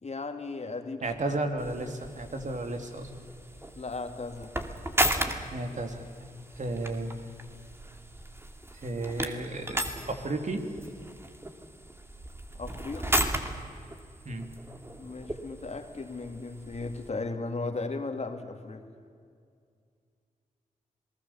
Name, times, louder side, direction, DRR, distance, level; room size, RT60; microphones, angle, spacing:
voice 1, 0.0-1.0 1.3-1.4 3.8-4.5 12.5-13.3 15.0-18.9, left 3 dB, 45° left, 5 dB, 2.6 m, -36 dB
voice 2, 1.0-3.1 5.5-6.0 6.6-7.2 8.8-10.6 14.2-14.5, right 2 dB, 55° right, 5 dB, 2.9 m, -33 dB
sound 1, 1.6-17.1, right 1 dB, 15° right, 2.6 m, -35 dB
27.0 x 19.0 x 7.2 m, 2.2 s
supercardioid pair, 45°, 15 cm